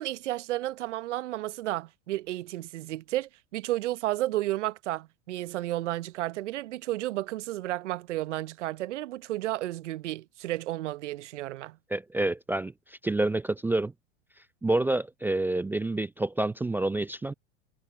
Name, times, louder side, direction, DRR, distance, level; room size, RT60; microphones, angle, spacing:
voice 1, 0.0-11.8, right 15 dB, 65° right, 1.1 m, -32 dB
voice 2, 11.9-12.7 13.0-13.9 14.6-17.3, right 2 dB, 5° right, 0.4 m, -28 dB
hypercardioid pair, 95°, 38 cm